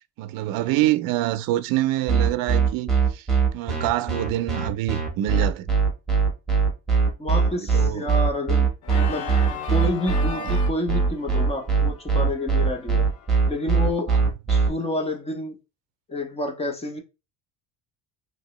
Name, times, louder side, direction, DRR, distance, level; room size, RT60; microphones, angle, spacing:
voice 1, 0.2-3.3 3.5-5.7 7.5-8.1 10.3-10.6 14.1-14.3, right 14 dB, 65° right, 0.5 m, -26 dB
sound 1, 2.1-14.7, right 5 dB, ahead, 0.9 m, -20 dB
voice 2, 7.2-9.3 9.7-13.1 13.5-14.2 14.5-15.6 16.1-17.0, left 1 dB, 15° left, 0.5 m, -29 dB
Organ, 8.8-13.7, left 5 dB, 75° left, 0.7 m, -37 dB
2.9 x 2.8 x 2.9 m
cardioid pair, 145°, 38 cm